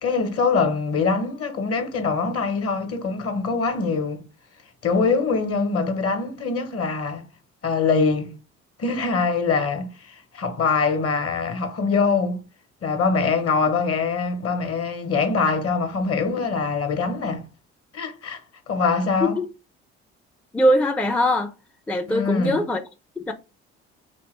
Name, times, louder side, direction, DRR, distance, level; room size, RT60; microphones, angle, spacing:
voice 1, 0.0-4.2 4.8-7.2 7.6-8.4 8.8-12.4 12.8-17.5 17.9-18.4 18.7-19.4 22.1-22.6, left 4 dB, 40° left, 1.0 m, -23 dB
voice 2, 20.5-21.5 21.9-22.8 23.2-23.3, left 1 dB, 5° left, 0.4 m, -21 dB
3.0 x 2.9 x 3.0 m
hypercardioid pair, 50°, 34 cm